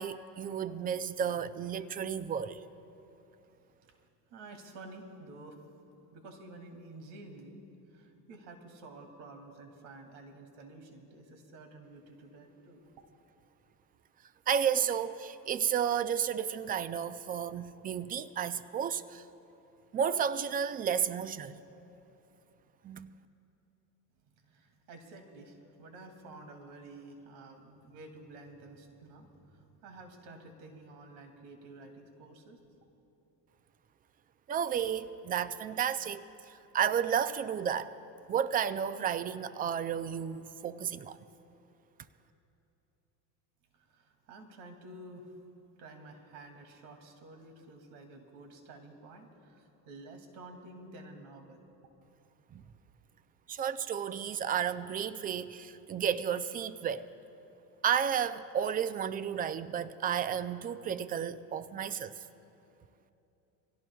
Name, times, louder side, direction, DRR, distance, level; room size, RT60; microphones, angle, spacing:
voice 1, 0.0-2.6 14.5-19.2 19.9-21.6 22.8-23.1 34.5-36.2 36.7-37.9 38.3-41.2 52.5-52.6 53.5-57.1 57.8-62.1, right 8 dB, 20° right, 0.3 m, -32 dB
voice 2, 4.3-5.6 6.1-12.8 24.3-32.6 43.7-45.4 45.8-51.7, right 2 dB, 70° right, 2.5 m, -51 dB
26.0 x 17.0 x 2.3 m
supercardioid pair, 95°, 49 cm